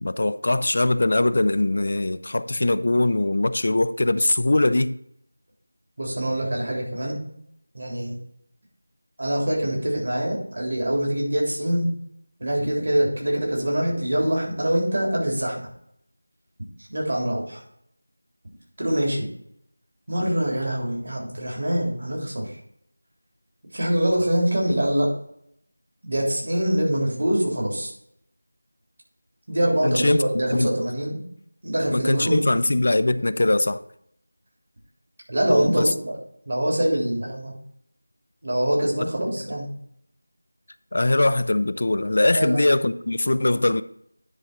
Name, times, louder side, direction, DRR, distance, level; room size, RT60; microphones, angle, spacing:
voice 1, 0.0-5.0 29.8-30.2 30.5-30.7 31.9-33.8 35.5-35.9 39.0-39.1 40.9-43.8, left 2 dB, 50° left, 13 dB, 0.5 m, -21 dB
voice 2, 6.0-7.2 7.7-8.2 9.2-11.9 12.4-15.6 16.9-17.6 18.8-19.3 20.1-22.5 23.7-25.1 26.0-27.9 29.5-31.2 31.6-32.4 35.3-36.2 36.5-37.5 38.4-39.7 42.3-42.6, right 1 dB, 55° right, -2 dB, 3.5 m, -24 dB
9.9 x 4.1 x 6.0 m, 0.71 s
figure-of-eight pair, 175°, 0 cm